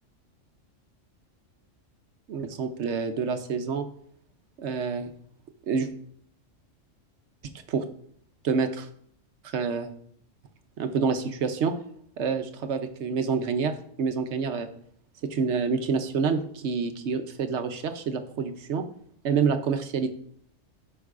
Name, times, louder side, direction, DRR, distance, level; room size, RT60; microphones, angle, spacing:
voice 1, 2.3-3.8 4.6-5.1 5.7-5.9 7.7-7.8 8.4-8.9 9.4-9.9 10.8-11.7 12.2-14.7 15.2-18.8 19.2-20.1, right 5 dB, 65° right, 8 dB, 0.9 m, -27 dB
12.5 x 5.3 x 2.4 m, 0.65 s
omnidirectional pair, 1.4 m